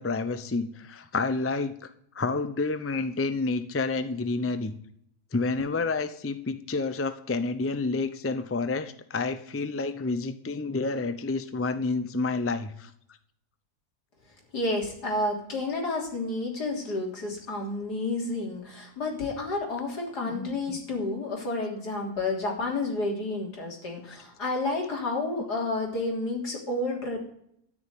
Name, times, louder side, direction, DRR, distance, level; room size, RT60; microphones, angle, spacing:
voice 1, 0.0-1.9 2.1-4.7 5.3-12.9 20.2-20.8, left 3 dB, 20° left, 11 dB, 0.4 m, -29 dB
voice 2, 14.5-27.2, left 2 dB, 85° left, 0 dB, 3.8 m, -30 dB
13.0 x 6.3 x 9.4 m, 0.70 s
omnidirectional pair, 1.7 m